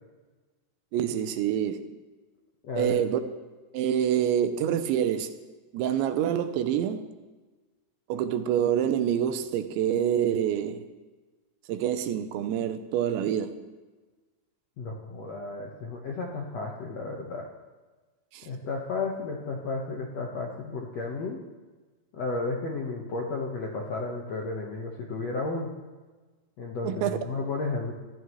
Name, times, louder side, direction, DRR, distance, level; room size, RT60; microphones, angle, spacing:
voice 1, 0.9-2.0 2.8-3.2 3.7-5.3 5.7-7.0 8.1-10.9 11.7-13.6 18.3-18.5 26.8-27.2, right 9 dB, 85° right, 3.1 m, -26 dB
voice 2, 2.6-3.0 14.8-17.5 18.4-21.4 22.1-25.7 26.6-27.9, left 3 dB, 80° left, 1.5 m, -33 dB
24.5 x 14.5 x 3.2 m
omnidirectional pair, 5.1 m